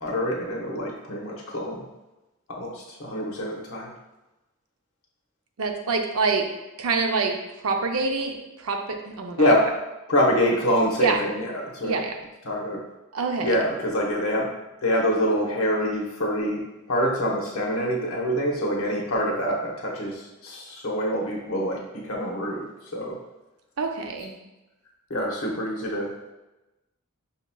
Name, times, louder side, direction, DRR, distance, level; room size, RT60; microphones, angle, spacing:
voice 1, 0.0-1.8 2.5-3.9 9.4-9.7 10.1-11.4 11.7-12.0 12.5-12.8 13.4-14.5 14.8-16.6 16.9-22.6 22.9-23.2 25.1-26.1, equal, 80° left, -2 dB, 0.9 m, -25 dB
voice 2, 5.6-6.4 6.8-9.5 11.0-11.2 11.8-12.1 13.1-13.6 23.8-24.4, right 4 dB, 80° right, 4 dB, 0.5 m, -26 dB
5.8 x 2.8 x 2.2 m, 1.0 s
head